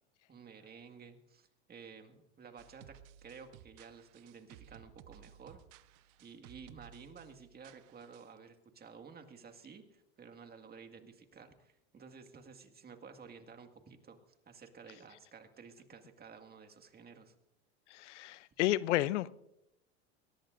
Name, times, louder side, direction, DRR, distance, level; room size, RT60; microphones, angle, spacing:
voice 1, 0.3-5.6 6.2-17.3, right 5 dB, 25° right, 6 dB, 1.9 m, -53 dB
sound 1, 2.6-8.4, right 11 dB, 65° right, 0.8 m, -58 dB
voice 2, 17.9-19.3, left 15 dB, 85° left, 19 dB, 0.6 m, -31 dB
22.5 x 18.5 x 2.6 m, 0.84 s
hypercardioid pair, 95°, 34 cm